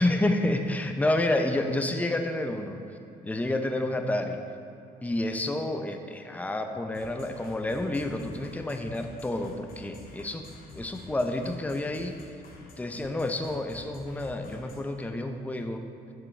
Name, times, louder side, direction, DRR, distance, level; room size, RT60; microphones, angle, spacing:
voice 1, 0.0-2.8 3.2-4.4 5.0-10.5 10.7-12.2 12.8-15.9, left 1 dB, 10° left, 5 dB, 0.6 m, -29 dB
sound 1, 6.9-14.9, left 2 dB, 60° left, 1.5 m, -49 dB
11.0 x 7.4 x 3.3 m, 2.7 s
cardioid pair, 110°, 17 cm